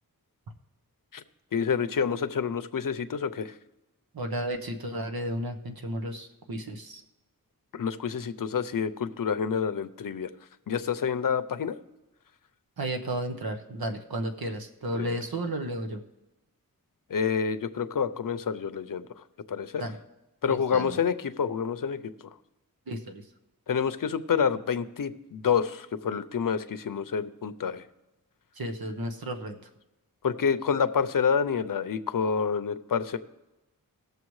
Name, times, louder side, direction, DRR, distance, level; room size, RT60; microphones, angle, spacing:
voice 1, 1.5-3.5 7.7-10.3 10.7-11.8 14.9-15.2 17.1-19.1 19.5-19.8 20.4-22.1 23.7-27.8 30.2-33.2, left 6 dB, 65° left, 11 dB, 0.7 m, -28 dB
voice 2, 4.1-7.0 12.8-16.0 19.8-20.0 20.5-21.0 22.9-23.2 28.6-29.6, right 1 dB, 75° right, 4 dB, 1.1 m, -33 dB
18.5 x 6.8 x 3.2 m, 0.98 s
wide cardioid pair, 50°, 36 cm